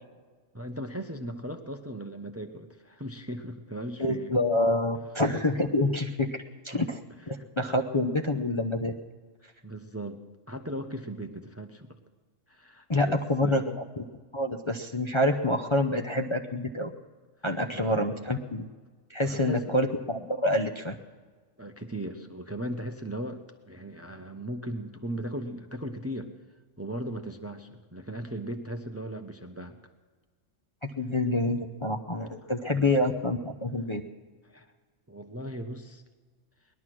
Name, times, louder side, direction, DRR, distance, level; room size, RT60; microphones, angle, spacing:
voice 1, 0.5-4.3 5.8-5.9 6.7-6.9 7.3-7.7 9.6-11.9 12.5-13.7 17.7-18.1 19.2-19.8 21.6-26.3 26.8-29.8 32.6-33.0 34.4-34.7 35.1-36.0, right 1 dB, 15° right, 6 dB, 0.8 m, -38 dB
voice 2, 4.0-6.3 6.6-7.0 7.3-8.9 12.9-13.6 14.0-14.1 14.3-16.9 17.4-18.7 19.1-20.9 31.0-34.0, left 1 dB, 30° left, 3 dB, 0.7 m, -27 dB
19.5 x 12.0 x 6.2 m, 1.4 s
omnidirectional pair, 1.3 m